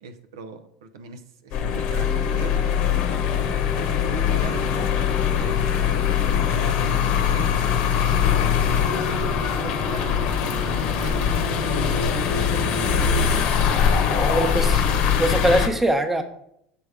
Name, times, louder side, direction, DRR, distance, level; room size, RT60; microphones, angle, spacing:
voice 1, 0.0-2.7 3.1-4.7 5.4-7.5 8.3-10.3 10.9-12.7, right 4 dB, 90° right, 7 dB, 0.6 m, -39 dB
sound 1, 1.5-15.7, left 7 dB, 60° left, 0.8 m, -22 dB
voice 2, 14.2-14.8 15.2-16.2, right 1 dB, 10° right, 6 dB, 0.8 m, -22 dB
6.8 x 3.4 x 4.9 m, 0.73 s
supercardioid pair, 100°, 2 cm